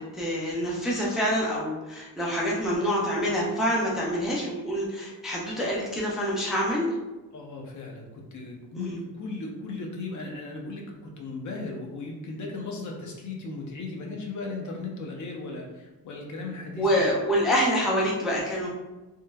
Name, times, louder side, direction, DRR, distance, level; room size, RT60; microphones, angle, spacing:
voice 1, 0.1-6.9 8.8-9.0 16.8-18.7, equal, ahead, -5 dB, 0.3 m, -26 dB
voice 2, 7.3-17.0, left 3 dB, 50° left, 0 dB, 0.6 m, -37 dB
3.0 x 2.2 x 2.2 m, 1.1 s
cardioid pair, 155°, 39 cm